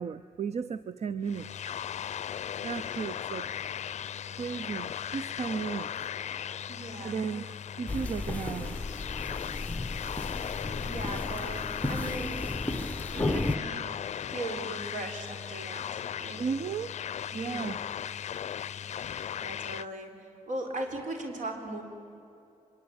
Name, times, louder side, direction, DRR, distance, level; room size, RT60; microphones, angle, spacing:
voice 1, 0.0-1.5 2.6-3.5 4.3-5.9 7.0-7.4 7.8-8.8 16.4-16.9 17.3-17.8, right 6 dB, 55° right, 14 dB, 0.6 m, -34 dB
sound 1, 1.2-19.9, left 9 dB, 60° left, 0.5 m, -37 dB
voice 2, 6.7-7.2 10.4-12.4 13.1-13.9 14.3-16.4 17.4-17.7 19.0-21.8, right 2 dB, 75° right, 5 dB, 4.4 m, -39 dB
sound 2, 7.9-13.6, left 2 dB, 10° left, 1.1 m, -34 dB
25.0 x 23.0 x 8.9 m, 2.7 s
cardioid pair, 90°, 13 cm